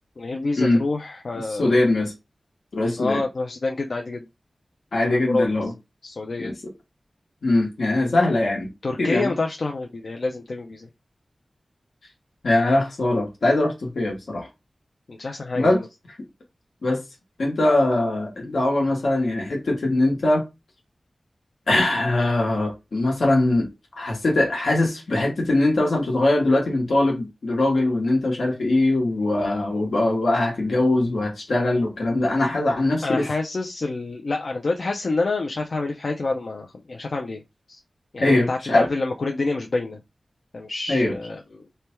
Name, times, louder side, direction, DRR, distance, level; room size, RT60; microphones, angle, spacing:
voice 1, 0.2-1.8 3.0-4.3 5.0-5.5 6.0-6.5 8.8-10.9 15.1-15.7 33.0-37.4 37.7-37.8 38.1-40.0 40.5-41.7, left 3 dB, 70° left, 0.5 m, -27 dB
voice 2, 1.5-2.1 2.7-3.2 4.9-5.7 6.4-6.7 7.4-8.7 9.0-9.3 12.4-14.5 15.5-15.8 16.8-17.0 17.4-20.4 21.7-23.7 24.0-33.3 38.2-38.9 40.9-41.1, left 2 dB, 90° left, 1.1 m, -21 dB
3.3 x 2.2 x 4.3 m
wide cardioid pair, 55°, 0 cm